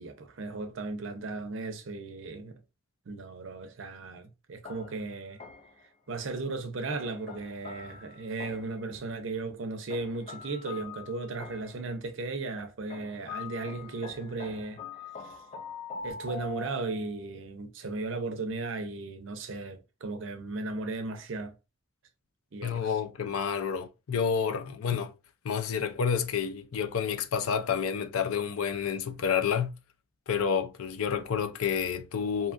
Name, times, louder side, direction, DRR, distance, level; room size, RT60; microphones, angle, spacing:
voice 1, 0.0-2.5 3.1-5.4 6.1-14.8 15.2-15.6 16.0-21.5 22.5-22.9, right 3 dB, 65° right, 0.6 m, -36 dB
sound 1, 4.6-5.9 6.9-8.9 9.9-11.9 12.9-17.2, left 5 dB, 30° left, 0.4 m, -44 dB
voice 2, 22.6-25.1 25.4-29.7 30.3-32.5, left 7 dB, 90° left, 0.4 m, -29 dB
2.7 x 2.4 x 2.4 m
head